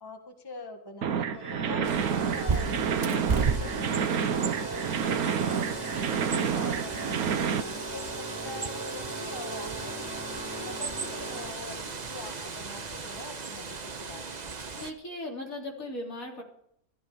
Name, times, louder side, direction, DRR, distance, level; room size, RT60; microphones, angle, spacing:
voice 1, 0.0-4.8 5.2-10.1 10.6-14.6, left 3 dB, 15° left, 4 dB, 1.5 m, -44 dB
sound 1, 1.0-7.6, right 7 dB, 80° right, 1.4 m, -29 dB
Organ, 1.3-12.0, right 2 dB, 50° left, 8.6 m, -39 dB
Bird, 1.8-14.9, right 4 dB, 35° right, 1.0 m, -35 dB
voice 2, 14.8-16.4, left 1 dB, 65° left, -1 dB, 4.2 m, -37 dB
15.0 x 13.0 x 5.0 m, 0.71 s
omnidirectional pair, 1.5 m